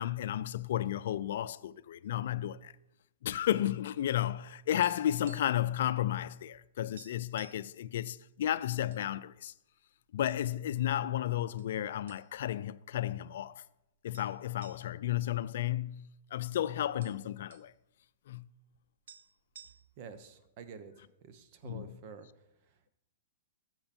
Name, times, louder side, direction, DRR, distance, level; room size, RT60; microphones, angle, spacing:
voice 1, 0.0-2.7 3.2-9.5 10.1-13.6 14.0-17.7 18.3-18.5 21.6-22.0, left 12 dB, 65° left, 0.5 m, -33 dB
sound 1, 4.8-5.7 6.0-6.2 6.5-6.6 7.0-7.7 8.4-9.1 9.4-9.6 10.3-10.9 11.6-11.7 12.1-12.6 13.0-13.1 14.1-16.2 16.5-16.6 16.8-17.7 18.7-18.8 19.1-20.1, right 7 dB, 75° right, 0.9 m, -56 dB
voice 2, 20.0-20.9 21.2-22.3, right 6 dB, 40° right, 1.1 m, -48 dB
13.0 x 7.7 x 4.4 m
hypercardioid pair, 150°, 0 cm